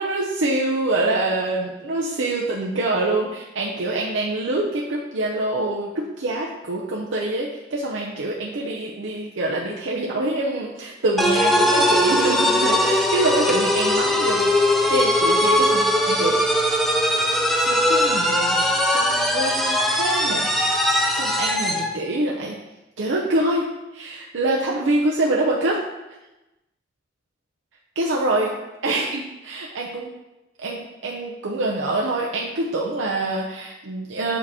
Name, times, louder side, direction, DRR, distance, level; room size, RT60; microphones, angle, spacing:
voice 1, 0.0-14.4 14.9-16.3 17.5-20.5 21.1-22.6 23.0-25.8 28.0-28.5 28.8-30.1 30.6-34.4, right 2 dB, 85° right, -2 dB, 0.6 m, -25 dB
sound 1, 11.2-21.9, left 1 dB, ahead, 0.4 m, -20 dB
7.2 x 2.9 x 4.8 m, 1.0 s
head